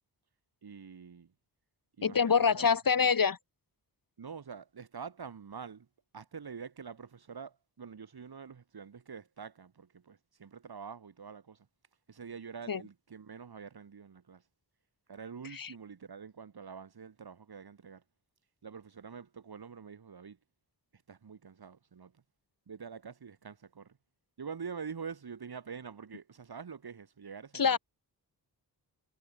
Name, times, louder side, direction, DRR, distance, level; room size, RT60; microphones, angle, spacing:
voice 1, 0.6-1.3 2.0-2.7 3.0-3.2 4.2-5.9 6.1-11.7 12.1-14.4 15.1-18.0 18.6-20.4 20.9-22.2 22.7-24.0 24.4-27.8, right 6 dB, 65° right, 5.6 m, -46 dB
voice 2, 2.0-3.4 12.7-12.8 15.6-15.7 27.5-27.8, left 6 dB, 55° left, 2.8 m, -25 dB
wide cardioid pair, 130°, 40 cm